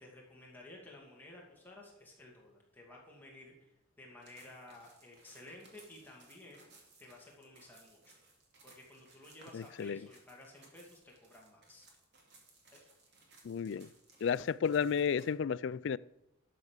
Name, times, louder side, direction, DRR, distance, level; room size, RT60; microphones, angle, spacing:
voice 1, 0.0-8.0 8.6-11.9 12.7-12.8, left 1 dB, 10° left, -3 dB, 2.4 m, -54 dB
sound 1, 4.2-15.3, right 3 dB, 55° right, 2.8 m, -63 dB
voice 2, 9.5-10.0 13.4-13.9 14.2-16.0, left 7 dB, 60° left, 19 dB, 0.3 m, -32 dB
12.0 x 6.7 x 6.6 m, 0.86 s
head